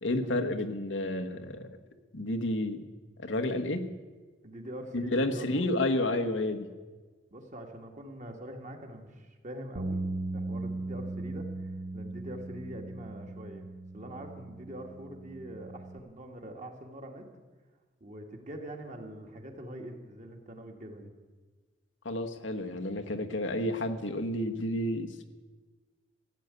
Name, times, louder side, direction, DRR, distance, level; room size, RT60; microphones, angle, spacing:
voice 1, 0.0-1.7 2.1-2.8 3.2-3.9 4.9-6.7 22.0-25.2, left 1 dB, 85° left, 6 dB, 1.2 m, -30 dB
voice 2, 4.4-5.7 7.3-10.1 10.3-11.5 11.9-13.7 13.9-17.2 18.0-21.1, right 1 dB, 40° right, 3 dB, 1.8 m, -44 dB
sound 1, 9.8-16.0, right 2 dB, 65° right, 1.0 m, -38 dB
15.0 x 8.0 x 9.5 m, 1.4 s
head